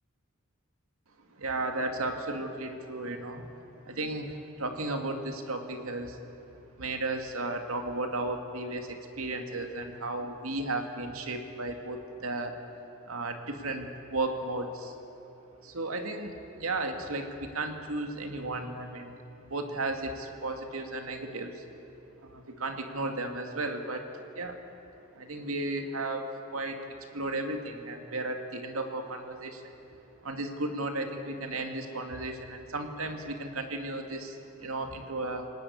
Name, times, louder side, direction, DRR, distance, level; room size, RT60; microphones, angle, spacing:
voice 1, 1.3-3.6 3.9-6.2 6.8-12.6 13.1-14.9 15.6-19.2 19.5-21.6 22.2-24.1 24.4-24.6 25.1-26.2 26.5-29.8 30.2-35.5, right 2 dB, 85° right, 4 dB, 2.3 m, -34 dB
28.0 x 18.5 x 8.3 m, 2.9 s
head